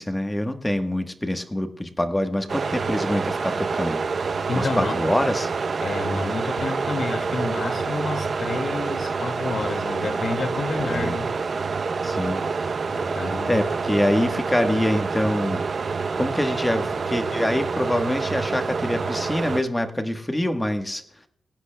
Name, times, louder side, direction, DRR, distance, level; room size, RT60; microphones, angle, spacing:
voice 1, 0.0-4.0 4.5-5.5 10.8-11.2 12.0-12.4 13.5-15.6 16.2-21.0, left 1 dB, 10° left, 6 dB, 1.2 m, -25 dB
sound 1, 2.5-19.6, right 4 dB, 45° right, 0.7 m, -27 dB
voice 2, 4.5-5.0 5.8-11.3 12.9-13.6, left 4 dB, 45° left, 6 dB, 2.0 m, -30 dB
24.0 x 17.0 x 2.2 m, 0.71 s
wide cardioid pair, 150°, 0 cm